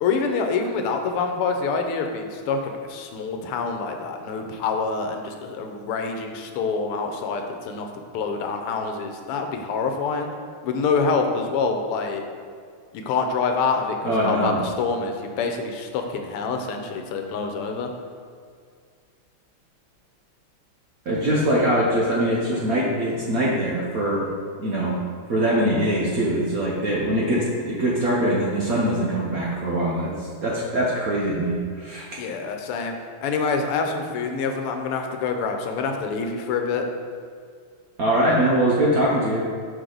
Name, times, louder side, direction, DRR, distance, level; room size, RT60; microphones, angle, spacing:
voice 1, 0.0-7.9 8.1-10.3 10.6-12.2 12.9-17.9 32.2-32.9 33.2-36.9, left 4 dB, 85° left, 4 dB, 1.6 m, -26 dB
voice 2, 14.0-14.6 21.1-24.3 24.6-25.0 25.3-30.1 30.4-32.1 38.0-39.4, right 1 dB, 60° right, -5 dB, 1.0 m, -22 dB
6.4 x 5.2 x 3.8 m, 2.1 s
omnidirectional pair, 2.4 m